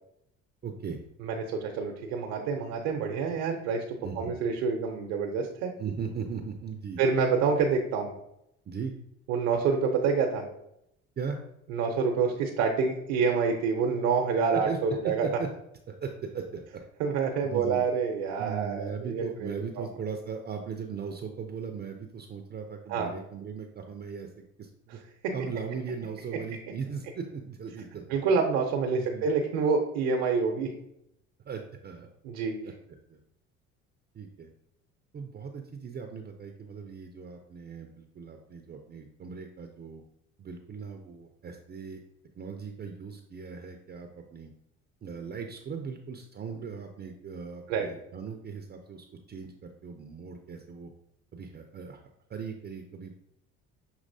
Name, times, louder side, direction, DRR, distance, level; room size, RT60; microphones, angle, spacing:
voice 1, 0.6-1.0 4.0-4.3 5.8-7.0 8.7-8.9 11.2-11.4 14.5-15.5 15.9-16.8 17.5-17.8 18.4-24.3 24.6-25.0 25.3-28.2 28.9-29.3 31.4-32.1 32.6-32.7 33.1-33.2 34.1-34.5 35.1-40.0 40.4-42.0 42.4-44.5 45.0-50.9 51.3-52.0 52.3-53.2, right 6 dB, 30° right, 4 dB, 0.5 m, -38 dB
voice 2, 1.2-5.7 7.0-8.1 9.3-10.4 11.7-15.3 17.0-19.5 19.8-19.9 22.9-23.1 24.9-25.0 25.2-25.3 28.1-30.7 32.2-32.6 47.7-47.9, right 5 dB, 80° right, 2 dB, 0.8 m, -27 dB
6.3 x 2.9 x 2.7 m, 0.79 s
supercardioid pair, 75°, 32 cm